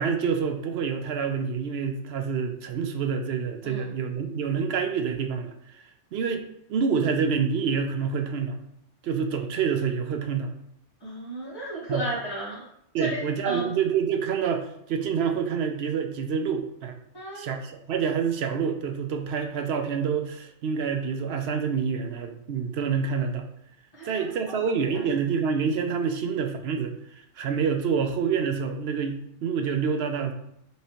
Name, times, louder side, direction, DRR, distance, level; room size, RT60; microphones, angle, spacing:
voice 1, 0.0-5.8 6.1-8.6 9.0-10.5 11.9-12.0 12.9-17.0 17.3-23.5 24.0-26.9 27.4-30.3, right 6 dB, 65° right, 6 dB, 0.8 m, -27 dB
voice 2, 11.0-12.6 12.9-13.7 17.1-17.5 23.9-24.3 24.9-25.0, right 2 dB, 20° left, -10 dB, 1.4 m, -33 dB
5.4 x 3.1 x 2.9 m, 0.75 s
omnidirectional pair, 1.2 m